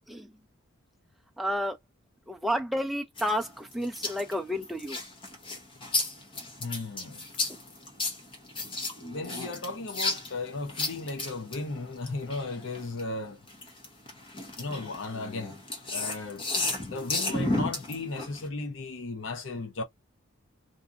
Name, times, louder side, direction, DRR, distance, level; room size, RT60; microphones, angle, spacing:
voice 1, 1.4-1.8 2.3-5.0, equal, ahead, 0.4 m, -31 dB
sound 1, 3.2-13.0 13.5-18.5, left 2 dB, 25° left, 0.7 m, -33 dB
voice 2, 6.6-7.2 9.0-13.4 14.6-15.6 15.9-16.5 16.8-19.8, left 3 dB, 60° left, 0.6 m, -35 dB
2.6 x 2.5 x 2.4 m
head